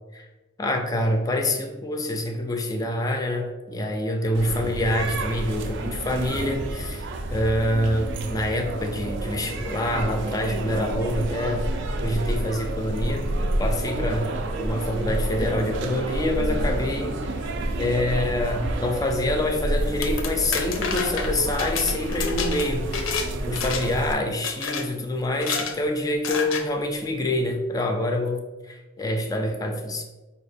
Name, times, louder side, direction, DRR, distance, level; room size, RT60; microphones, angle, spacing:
voice 1, 0.6-11.7 12.0-13.3 13.6-14.3 14.6-23.1 23.5-30.0, left 1 dB, 20° left, 4 dB, 0.3 m, -26 dB
sound 1, 4.3-24.1, right 1 dB, 65° right, 0.4 m, -29 dB
sound 2, 19.8-23.3 23.6-24.0 24.4-24.8 25.3-25.7 26.2-26.6, left 6 dB, 80° left, 0.5 m, -29 dB
4.7 x 2.3 x 3.4 m, 1.1 s
head